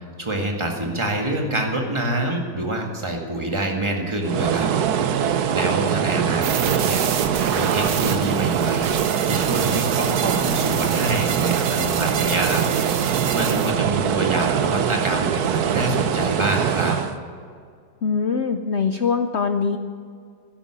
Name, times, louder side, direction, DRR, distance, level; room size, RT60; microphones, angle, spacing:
voice 1, 0.2-4.7 5.3-8.9 9.3-17.0, right 1 dB, 15° right, 1 dB, 1.9 m, -26 dB
sound 1, 4.2-17.2, right 8 dB, 65° right, 1.2 m, -23 dB
sound 2, 6.4-13.7, right 7 dB, 85° right, 1.8 m, -29 dB
voice 2, 18.0-19.8, left 5 dB, 75° left, 7 dB, 0.6 m, -22 dB
13.0 x 11.0 x 8.8 m, 2.2 s
omnidirectional pair, 2.0 m